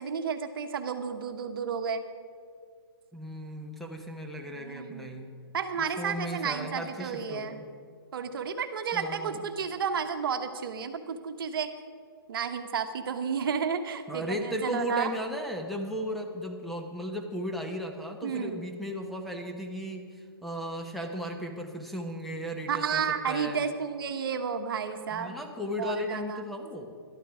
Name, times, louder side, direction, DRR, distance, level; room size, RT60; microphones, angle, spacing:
voice 1, 0.0-2.0 4.5-5.1 5.5-7.6 8.1-11.7 12.3-15.1 18.2-18.6 22.7-25.4 25.8-26.4, right 6 dB, 65° right, 8 dB, 1.1 m, -32 dB
voice 2, 3.1-5.3 6.0-7.7 8.9-9.4 14.1-23.0 23.3-23.7 25.1-26.9, equal, ahead, 1 dB, 1.0 m, -35 dB
13.0 x 12.5 x 4.9 m, 2.2 s
hypercardioid pair, 135°, 13 cm